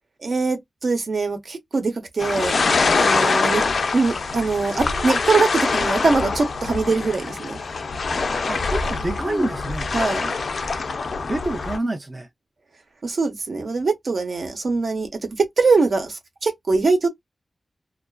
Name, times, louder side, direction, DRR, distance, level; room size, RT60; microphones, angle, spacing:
voice 1, 0.2-2.5 2.9-3.6 3.9-7.6 9.9-10.3 13.0-17.1, right 4 dB, 60° right, 0.8 m, -22 dB
sound 1, 2.2-11.8, left 4 dB, 65° left, 0.4 m, -24 dB
voice 2, 8.5-9.9 11.2-12.3, right 1 dB, 25° right, 0.4 m, -27 dB
2.4 x 2.3 x 2.2 m
wide cardioid pair, 130°, 0 cm